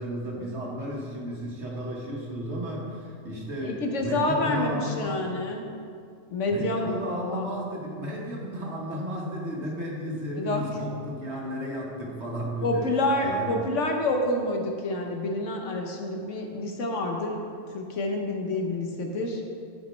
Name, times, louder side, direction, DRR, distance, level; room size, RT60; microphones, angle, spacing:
voice 1, 0.0-5.2 6.5-12.8 13.2-13.6, equal, 55° right, -3 dB, 1.7 m, -33 dB
voice 2, 3.6-5.6 6.3-7.5 10.3-10.6 12.6-17.4 17.7-19.4, left 2 dB, 65° left, 1 dB, 1.2 m, -28 dB
11.5 x 5.1 x 4.5 m, 2.3 s
omnidirectional pair, 1.4 m